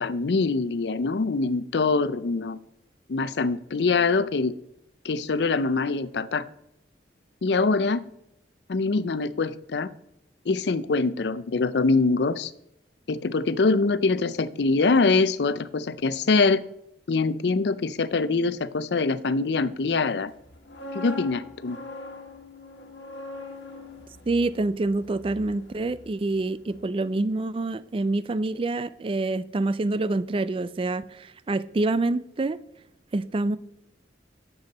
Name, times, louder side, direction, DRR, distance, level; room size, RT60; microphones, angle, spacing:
voice 1, 0.0-2.6 3.1-4.5 5.0-6.4 7.4-8.0 8.7-9.9 10.5-12.5 13.1-16.6 17.1-20.3 20.9-21.8, left 3 dB, 65° left, 0.5 m, -24 dB
sound 1, 20.4-26.4 26.7-26.9, left 3 dB, 85° left, 1.4 m, -41 dB
voice 2, 24.3-32.6 33.1-33.6, right 2 dB, 30° right, 0.4 m, -26 dB
10.5 x 7.0 x 4.1 m
head